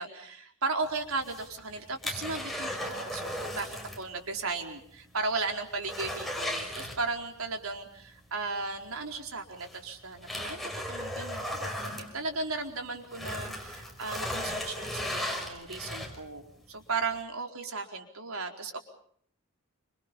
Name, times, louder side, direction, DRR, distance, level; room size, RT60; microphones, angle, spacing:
voice 1, 0.0-18.8, right 3 dB, 70° right, 4 dB, 4.6 m, -36 dB
sound 1, 1.1-4.1 4.4-4.5 4.9-5.0 5.4-7.4 8.8-8.9 9.6-12.7 13.0-16.4 16.9-17.0, left 1 dB, ahead, 5.9 m, -36 dB
29.0 x 27.0 x 5.4 m, 0.63 s
head